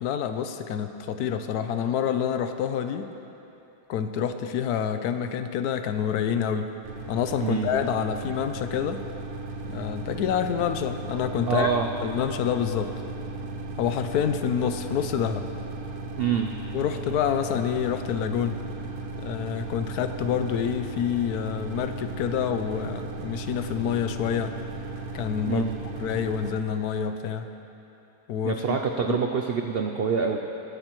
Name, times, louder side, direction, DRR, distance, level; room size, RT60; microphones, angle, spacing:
voice 1, 0.0-3.1 3.9-6.8 7.1-9.0 9.6-11.7 12.0-12.9 13.8-15.5 16.7-18.6 19.2-24.6 25.1-25.7 26.0-27.5 28.3-28.6 29.1-29.2, left 8 dB, 80° left, 9 dB, 1.1 m, -27 dB
sound 1, 6.8-26.5, right 2 dB, 70° right, 1.3 m, -36 dB
voice 2, 7.4-7.7 11.5-11.9 16.2-16.5 25.4-25.7 28.4-30.4, right 6 dB, 90° right, 4 dB, 0.5 m, -26 dB
21.0 x 8.8 x 3.0 m, 3.0 s
omnidirectional pair, 1.7 m